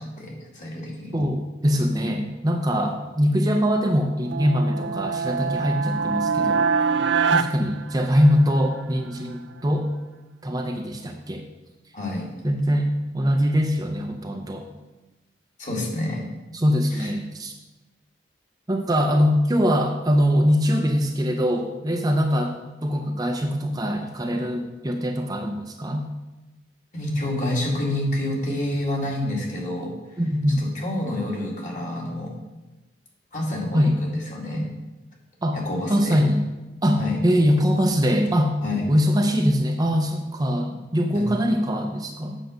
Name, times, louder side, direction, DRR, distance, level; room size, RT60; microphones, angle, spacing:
voice 1, 0.0-1.2 11.9-12.3 15.6-16.3 16.9-17.1 26.9-30.2 30.6-32.3 33.3-34.7 35.5-36.2 37.0-37.2 38.6-38.9 41.1-41.2, left 1 dB, 45° left, -2 dB, 2.2 m, -28 dB
voice 2, 1.1-6.6 7.3-9.9 10.4-11.4 12.4-14.7 16.5-17.5 18.7-22.6 22.8-26.1 30.2-30.6 33.7-34.0 35.4-35.6 35.9-36.4 36.8-38.5 38.9-42.4, equal, 20° right, 3 dB, 0.6 m, -22 dB
sound 1, 4.2-8.6, right 5 dB, 90° right, 0.4 m, -24 dB
8.0 x 6.6 x 5.1 m, 1.1 s
head